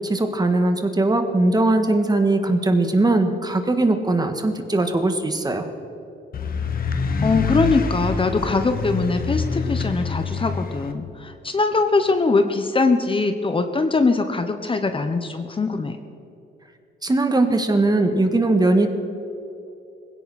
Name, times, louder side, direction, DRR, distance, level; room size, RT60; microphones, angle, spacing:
voice 1, 0.0-5.7 17.0-18.9, right 2 dB, 20° right, 7 dB, 1.7 m, -20 dB
sound 1, 6.3-10.9, left 5 dB, 45° left, 1.3 m, -26 dB
voice 2, 7.2-16.0, left 3 dB, 25° left, 7 dB, 1.1 m, -22 dB
20.0 x 16.5 x 4.3 m, 2.8 s
cardioid pair, 90°, 20 cm